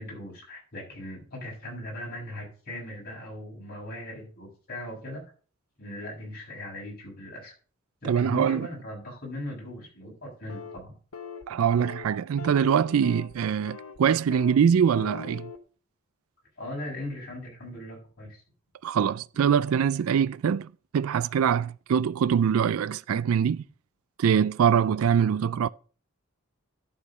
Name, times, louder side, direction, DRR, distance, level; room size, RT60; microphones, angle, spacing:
voice 1, 0.0-5.2 5.8-7.5 8.0-10.9 16.6-18.4, left 1 dB, 50° left, 6.6 m, -39 dB
voice 2, 8.0-8.7 11.5-15.5 18.8-23.6 24.2-25.7, right 7 dB, 80° right, 0.4 m, -23 dB
sound 1, 10.5-10.8 11.1-11.5 11.8-12.1 12.4-13.3 13.7-14.0 14.3-14.6 14.9-15.6, left 5 dB, 80° left, 1.0 m, -40 dB
11.5 x 4.9 x 6.6 m
head